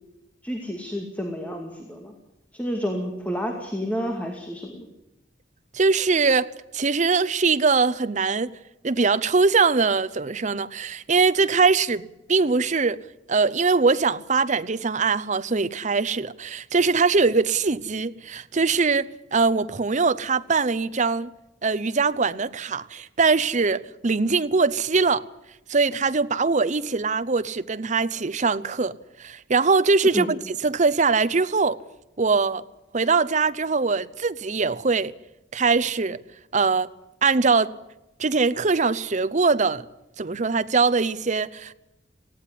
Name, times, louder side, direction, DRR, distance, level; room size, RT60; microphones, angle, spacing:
voice 1, 0.4-2.1 2.5-4.9 30.1-30.3, equal, 10° left, 2.3 m, -30 dB
voice 2, 5.7-8.6 8.8-13.0 13.3-21.3 21.6-25.3 25.7-31.8 32.2-32.6 32.9-35.1 35.5-36.2 36.5-36.9 37.2-37.7 38.2-39.8 40.2-41.7, right 4 dB, 40° right, 0.7 m, -22 dB
18.5 x 16.0 x 9.9 m
head